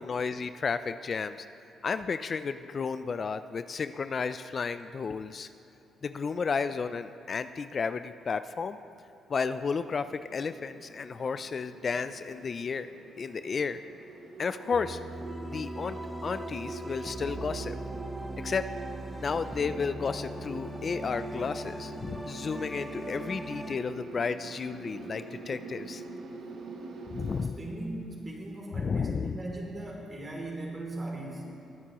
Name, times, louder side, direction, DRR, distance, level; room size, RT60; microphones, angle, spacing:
voice 1, 0.0-1.5 1.8-5.5 6.0-8.8 9.3-12.9 13.2-13.8 14.4-15.0 15.5-16.0 16.2-17.7 18.4-18.6 19.2-26.0 27.1-27.6 28.7-29.4, left 5 dB, 40° left, 11 dB, 0.3 m, -32 dB
sound 1, 9.7-27.5, right 3 dB, 65° right, 1.2 m, -44 dB
sound 2, 14.7-23.8, right 1 dB, 5° right, 0.8 m, -40 dB
voice 2, 27.6-31.6, right 1 dB, 30° right, -1 dB, 2.9 m, -38 dB
21.0 x 9.3 x 3.0 m, 2.9 s
cardioid pair, 90°, 0 cm